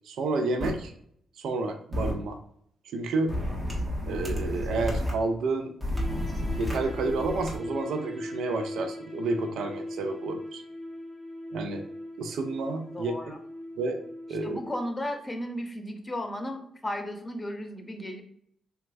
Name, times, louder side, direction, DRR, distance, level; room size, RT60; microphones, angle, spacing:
voice 1, 0.0-0.9 1.4-2.4 2.9-3.4 4.1-5.7 6.4-10.6 11.5-11.8 12.2-13.3 13.8-14.0 14.3-14.6, right 3 dB, 75° right, 6 dB, 0.4 m, -30 dB
sound 1, 0.6-0.7 1.9-2.1 3.3-5.1 5.8-7.6, left 1 dB, 25° right, 1.4 m, -31 dB
sound 2, 5.9-14.9, left 1 dB, 5° right, 1.2 m, -40 dB
voice 2, 12.9-13.4 14.4-18.2, left 1 dB, 25° left, 5 dB, 0.8 m, -35 dB
3.5 x 3.0 x 2.5 m, 0.68 s
supercardioid pair, 50°, 0 cm